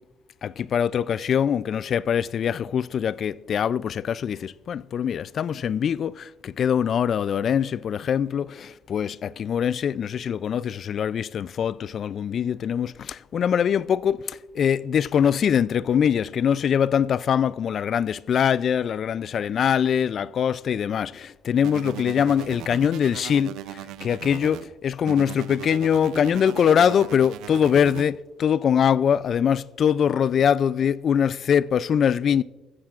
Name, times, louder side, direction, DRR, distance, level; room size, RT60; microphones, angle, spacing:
voice 1, 0.4-32.4, left 8 dB, 55° left, 0.3 m, -23 dB
sound 1, 21.6-24.6 25.1-28.1, right 12 dB, 85° right, 0.5 m, -37 dB
15.0 x 14.5 x 2.5 m
cardioid pair, 85°, 0 cm